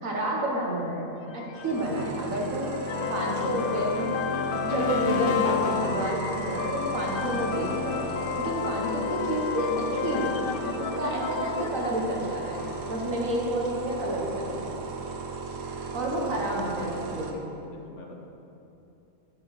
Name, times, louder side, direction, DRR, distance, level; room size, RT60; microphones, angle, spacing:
voice 1, 0.0-2.7 3.1-4.2 4.7-8.0 8.4-10.3 10.6-14.7 15.6-17.5, right 1 dB, 70° right, -2 dB, 2.0 m, -30 dB
sound 1, 1.3-13.1, left 7 dB, 75° left, 0.5 m, -31 dB
sound 2, 1.6-17.3, right 4 dB, 85° right, 1.3 m, -36 dB
voice 2, 16.2-17.1 17.7-18.2, left 2 dB, 60° left, 1 dB, 1.3 m, -45 dB
9.7 x 9.0 x 5.1 m, 2.8 s
omnidirectional pair, 1.4 m